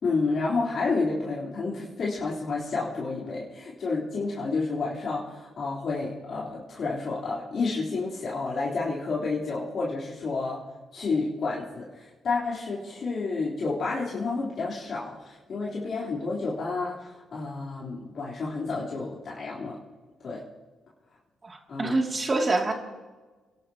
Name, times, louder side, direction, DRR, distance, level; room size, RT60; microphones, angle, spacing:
voice 1, 0.0-10.6 10.9-19.8 20.2-20.4 21.7-22.0, left 3 dB, 60° left, -6 dB, 3.7 m, -30 dB
voice 2, 21.4-22.7, right 2 dB, 35° right, 2 dB, 2.7 m, -26 dB
29.0 x 12.0 x 2.9 m, 1.3 s
supercardioid pair, 65°, 0 cm